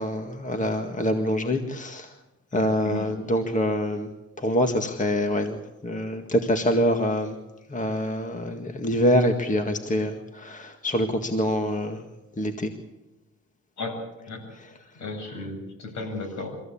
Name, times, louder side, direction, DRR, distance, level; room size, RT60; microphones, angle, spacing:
voice 1, 0.0-2.1 2.5-4.1 4.4-7.4 7.7-12.0 12.4-12.7 14.6-14.7, equal, 25° left, 6 dB, 1.9 m, -25 dB
voice 2, 2.5-3.1 13.8-14.0 14.3-14.4 15.0-16.5, left 3 dB, 65° left, 4 dB, 7.6 m, -34 dB
25.0 x 15.0 x 8.7 m, 1.0 s
cardioid pair, 90°, 30 cm